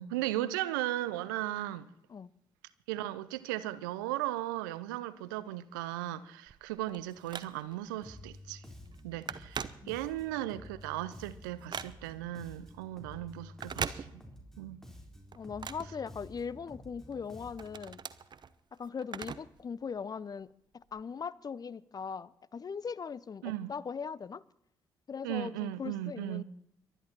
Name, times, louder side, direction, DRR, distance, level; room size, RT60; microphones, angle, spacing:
voice 1, 0.0-1.9 2.9-8.7 9.0-14.2 14.6-14.8 23.4-23.7 25.2-26.4, right 14 dB, 80° right, 0.6 m, -36 dB
Telephone, 6.5-7.9 8.4-8.6 8.9-10.4 10.8-12.3 13.5-14.6 14.9-16.7 17.1-19.6 19.9-20.0 20.9-21.0, right 6 dB, 45° right, 0.9 m, -41 dB
Bass guitar, 8.0-17.9, left 1 dB, 5° left, 3.9 m, -51 dB
voice 2, 15.4-18.0 18.7-24.4 25.1-26.4, left 6 dB, 40° left, 0.7 m, -40 dB
23.0 x 11.0 x 4.4 m
hypercardioid pair, 40°, 11 cm